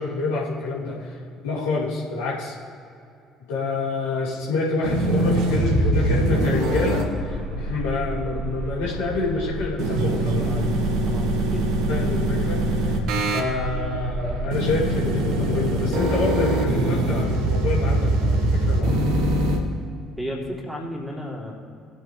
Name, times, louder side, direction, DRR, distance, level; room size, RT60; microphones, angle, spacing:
voice 1, 0.0-2.5 3.5-10.7 11.9-13.0 13.3-19.0, left 3 dB, 65° left, -7 dB, 3.0 m, -27 dB
sound 1, 4.8-19.6, right 1 dB, 60° right, 1.5 m, -23 dB
voice 2, 11.0-11.7 20.2-21.5, equal, ahead, -2 dB, 3.2 m, -33 dB
17.5 x 9.1 x 3.3 m, 2.6 s
figure-of-eight pair, 55°, 0 cm